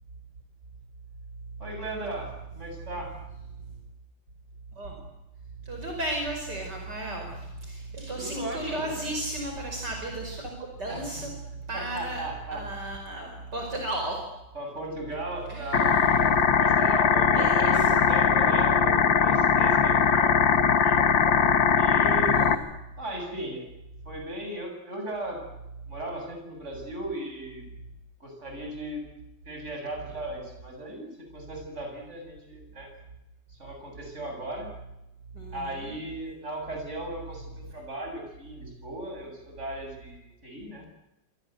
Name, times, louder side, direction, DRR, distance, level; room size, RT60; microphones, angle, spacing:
voice 1, 1.6-3.1 8.2-8.9 10.9-11.2 11.7-12.6 14.5-21.0 21.7-22.5 23.0-23.7 24.0-25.4 25.9-27.7 28.2-29.0 29.5-32.9 33.5-34.7 35.5-40.8, right 1 dB, 35° right, 3 dB, 8.1 m, -37 dB
voice 2, 5.7-11.3 11.7-12.2 12.5-14.2 15.5-15.7 17.4-17.6 17.9-18.0 22.0-22.6 35.3-36.0, right 1 dB, 55° right, 2 dB, 5.9 m, -34 dB
sound 1, 15.7-22.5, left 6 dB, 70° left, 2.4 m, -21 dB
27.0 x 26.5 x 8.1 m, 0.92 s
omnidirectional pair, 2.1 m